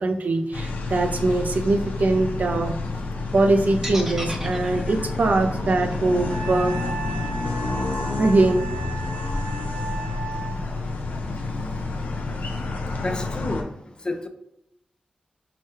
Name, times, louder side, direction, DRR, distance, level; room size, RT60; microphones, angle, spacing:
voice 1, 0.0-2.8 3.3-6.8 8.2-8.7, right 2 dB, 65° right, 6 dB, 0.4 m, -22 dB
sound 1, 0.5-13.6, left 3 dB, 90° left, 0.5 m, -29 dB
sound 2, 3.8-7.9, equal, 15° right, 0.7 m, -37 dB
Wind instrument woodwind instrument, 6.3-10.6, right 2 dB, 85° right, 0.8 m, -35 dB
voice 2, 13.0-13.7 14.0-14.3, left 2 dB, 30° left, 8 dB, 0.4 m, -29 dB
4.7 x 2.2 x 2.9 m, 0.81 s
wide cardioid pair, 70°, 3 cm